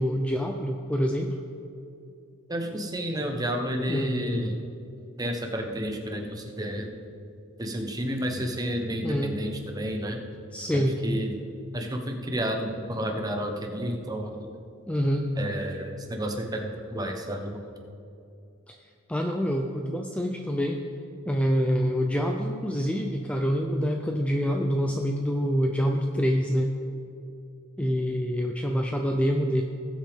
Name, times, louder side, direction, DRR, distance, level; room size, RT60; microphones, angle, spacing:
voice 1, 0.0-1.3 3.9-4.2 9.0-9.4 10.5-11.0 14.9-15.3 18.7-18.8 19.1-20.8 21.3-26.7 27.8-29.6, equal, 5° left, 2 dB, 0.5 m, -26 dB
voice 2, 2.5-4.6 5.2-6.9 7.6-10.3 10.7-11.4 11.7-14.5 15.4-17.6, equal, 20° right, 3 dB, 1.0 m, -31 dB
19.0 x 7.8 x 3.6 m, 2.6 s
head